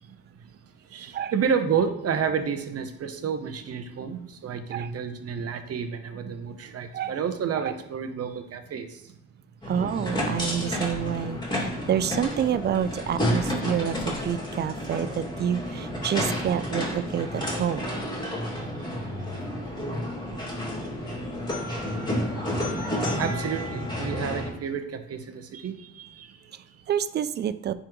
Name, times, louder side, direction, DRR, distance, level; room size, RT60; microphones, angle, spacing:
voice 1, 0.1-0.6 0.8-9.1 9.6-9.8 18.5-18.7 19.0-19.5 20.0-20.1 20.8-20.9 23.0-26.8, right 6 dB, 50° right, 0.8 m, -31 dB
sound 1, 9.6-24.5, equal, 15° left, 2.3 m, -30 dB
voice 2, 9.7-17.9 26.9-27.7, right 9 dB, 35° right, 0.4 m, -28 dB
9.8 x 3.7 x 3.1 m
cardioid pair, 90°, 30 cm